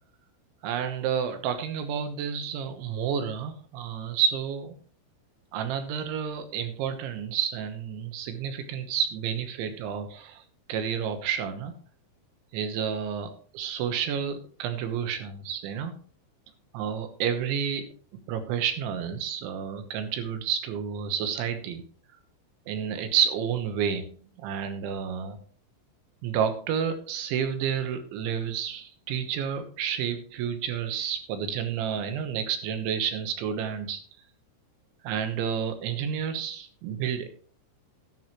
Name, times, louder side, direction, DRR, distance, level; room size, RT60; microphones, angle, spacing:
voice 1, 0.6-4.8 5.5-10.4 10.7-11.7 12.5-16.0 16.7-21.8 22.7-24.1 24.4-25.4 26.2-34.0 35.0-37.3, right 8 dB, 80° right, 8 dB, 3.5 m, -30 dB
12.0 x 11.0 x 3.1 m, 0.43 s
omnidirectional pair, 5.4 m